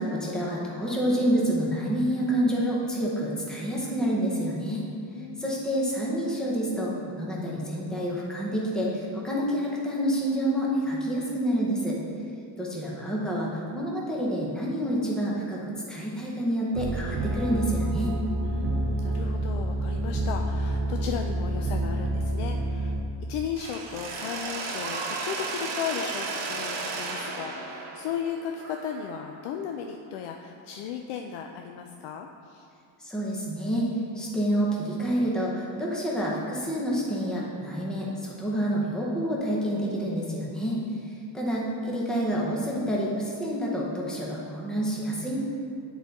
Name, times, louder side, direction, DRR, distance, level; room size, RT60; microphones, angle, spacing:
voice 1, 0.0-4.8 5.4-12.0 12.6-15.6 15.9-18.2 33.0-33.9 34.2-40.8 41.3-45.4, equal, ahead, -5 dB, 0.7 m, -28 dB
voice 2, 5.1-5.5 18.4-23.0 23.2-32.7 40.5-41.0, left 8 dB, 85° left, 3 dB, 0.5 m, -36 dB
sound 1, 16.7-23.0, right 1 dB, 30° right, 0.4 m, -28 dB
Mechanisms, 23.6-29.4, right 3 dB, 60° right, 0.9 m, -34 dB
9.6 x 4.0 x 4.0 m, 2.5 s
cardioid pair, 170°, 48 cm